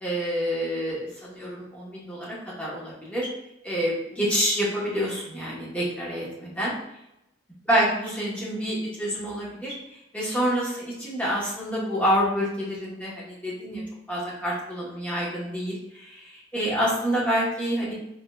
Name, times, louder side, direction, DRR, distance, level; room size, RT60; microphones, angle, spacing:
voice 1, 0.0-3.3 3.6-6.7 7.7-9.7 10.1-13.8 14.1-17.9, equal, 5° left, -7 dB, 1.0 m, -27 dB
3.6 x 3.3 x 2.3 m, 0.86 s
head